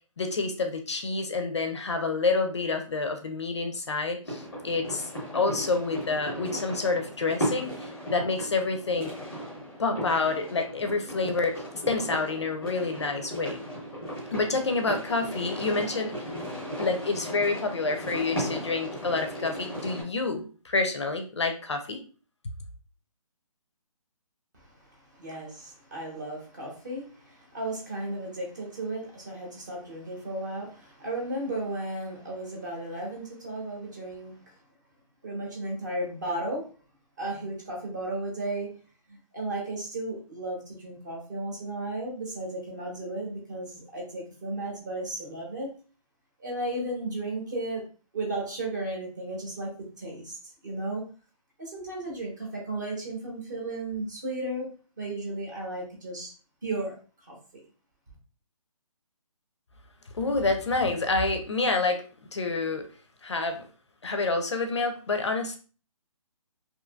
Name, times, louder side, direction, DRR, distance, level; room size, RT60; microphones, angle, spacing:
voice 1, 0.2-9.1 9.8-11.5 11.9-13.6 14.3-16.1 16.8-22.0 60.2-62.0 62.3-62.9 63.2-63.6 64.0-65.6, left 3 dB, 50° left, 5 dB, 0.4 m, -28 dB
sound 1, 4.2-20.0, equal, ahead, 0.6 m, -36 dB
voice 2, 24.5-34.6 35.2-36.7 37.2-38.7 39.1-45.7 46.4-47.8 48.1-50.4 50.6-51.0 51.6-54.7 55.0-56.3 56.6-57.4, right 2 dB, 30° right, -2 dB, 0.8 m, -34 dB
2.7 x 2.5 x 2.2 m, 0.38 s
hypercardioid pair, 175°, 18 cm